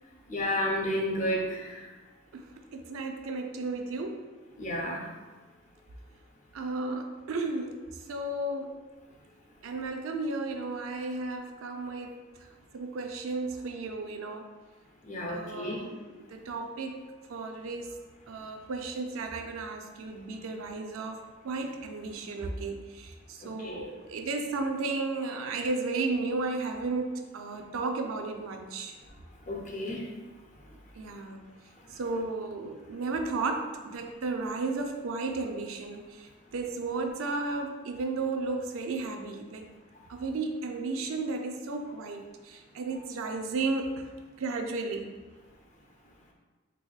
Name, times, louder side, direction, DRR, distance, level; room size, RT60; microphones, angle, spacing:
voice 1, 0.3-1.9 4.6-5.1 15.0-15.8 23.4-23.8 29.5-30.1, equal, 35° left, -1 dB, 0.5 m, -31 dB
voice 2, 2.3-4.2 6.5-8.8 9.6-12.2 12.7-14.5 15.3-17.0 17.3-18.0 18.3-28.9 31.0-31.5 31.9-39.7 40.1-44.1 44.4-45.0, right 3 dB, 85° right, 4 dB, 0.4 m, -34 dB
3.4 x 3.4 x 2.3 m, 1.3 s
head